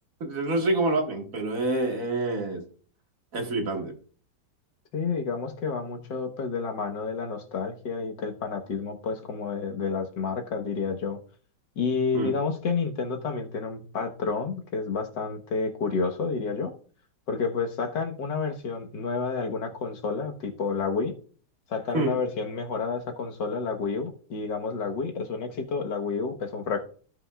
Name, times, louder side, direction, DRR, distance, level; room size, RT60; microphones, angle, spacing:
voice 1, 0.2-2.6 3.3-3.9 12.1-12.3 21.9-22.2, right 2 dB, 50° right, 2 dB, 2.1 m, -27 dB
voice 2, 4.9-11.2 11.8-16.7 17.3-21.1 21.7-26.8, left 5 dB, 85° left, 4 dB, 1.9 m, -30 dB
15.5 x 5.6 x 2.4 m, 0.43 s
omnidirectional pair, 1.9 m